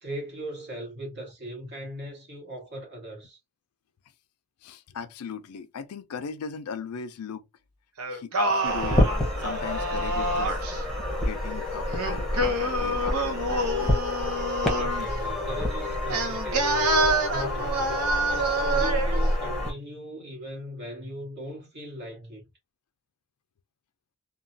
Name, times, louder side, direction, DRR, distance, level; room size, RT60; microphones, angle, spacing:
voice 1, 0.0-3.4 14.8-17.0 17.3-18.0 18.3-22.4, right 1 dB, 50° right, 1.6 m, -39 dB
voice 2, 4.6-7.5 8.1-9.0 9.4-10.6 11.2-14.0 17.9-18.0, left 6 dB, 90° left, 0.4 m, -38 dB
Singing, 8.0-10.8 11.9-15.1 16.1-19.2, right 2 dB, 90° right, 0.8 m, -27 dB
sound 1, 8.6-19.7, left 1 dB, ahead, 1.0 m, -28 dB
3.0 x 2.2 x 2.6 m
head